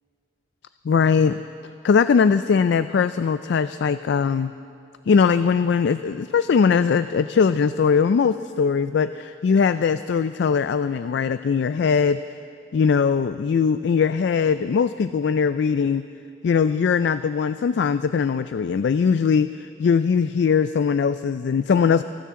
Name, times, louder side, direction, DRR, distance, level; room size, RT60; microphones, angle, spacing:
voice 1, 0.8-1.4 1.8-4.5 5.1-12.2 12.7-16.0 16.4-22.0, left 6 dB, 55° left, 12 dB, 0.3 m, -20 dB
29.0 x 13.0 x 3.7 m, 2.5 s
head